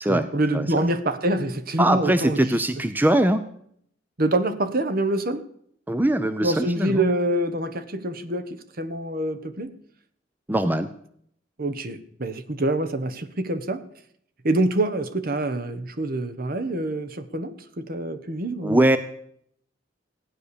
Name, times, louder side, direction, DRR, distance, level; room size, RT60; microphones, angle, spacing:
voice 1, 0.1-2.6 4.2-5.4 6.4-9.7 11.6-13.8 14.4-19.0, right 1 dB, 55° right, 1.2 m, -26 dB
voice 2, 1.8-3.4 5.9-7.0 10.5-10.9 18.6-19.0, right 1 dB, 10° right, 0.6 m, -21 dB
15.5 x 9.8 x 6.9 m
head